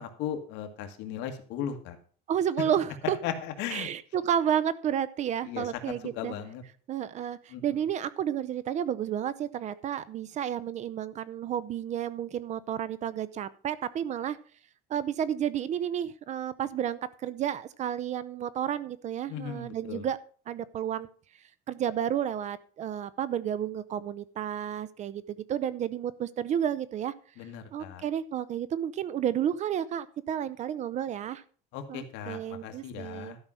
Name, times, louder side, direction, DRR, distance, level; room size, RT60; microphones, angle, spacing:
voice 1, 0.0-2.0 3.0-3.9 5.4-6.6 7.5-7.8 19.3-20.1 27.4-28.0 31.7-33.4, left 9 dB, 70° left, 6 dB, 1.8 m, -37 dB
voice 2, 2.3-3.2 3.7-6.4 6.9-14.4 14.9-20.2 20.5-21.1 21.7-27.1 27.7-31.4 31.9-33.4, right 9 dB, 40° right, 17 dB, 0.6 m, -31 dB
12.5 x 5.6 x 6.2 m, 0.43 s
cardioid pair, 140°, 19 cm